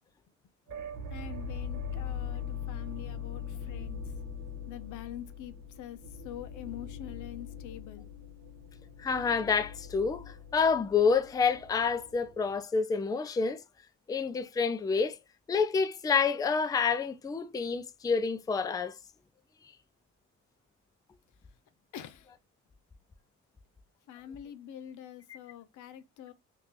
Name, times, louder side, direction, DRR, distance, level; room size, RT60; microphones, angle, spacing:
sound 1, 0.7-12.6, left 6 dB, 75° right, 1.3 m, -41 dB
voice 1, 1.1-4.1 4.7-6.0 6.2-8.1 21.9-22.3 24.1-26.3, left 11 dB, 80° left, 0.6 m, -45 dB
voice 2, 9.0-13.6 14.1-15.2 15.5-19.0, left 5 dB, 15° left, 0.3 m, -28 dB
2.9 x 2.5 x 3.6 m
cardioid pair, 90°, 30 cm